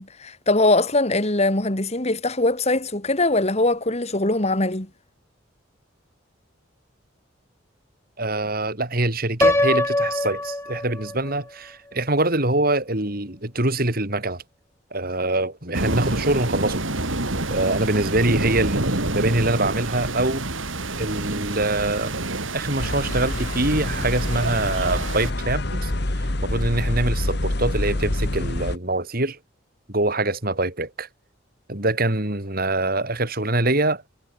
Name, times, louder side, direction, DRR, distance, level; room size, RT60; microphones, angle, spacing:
voice 1, 0.0-4.9, left 2 dB, 35° left, 2.6 m, -21 dB
voice 2, 8.2-14.4 14.9-16.8 17.5-20.5 21.0-22.2 22.5-29.4 29.9-31.1 31.7-34.0, right 2 dB, 50° right, 4.5 m, -24 dB
Piano, 9.4-11.4, left 1 dB, 15° left, 1.8 m, -22 dB
sound 1, 15.7-25.3, right 2 dB, 80° right, 5.0 m, -28 dB
sound 2, 22.8-28.8, left 1 dB, 55° left, 1.9 m, -26 dB
head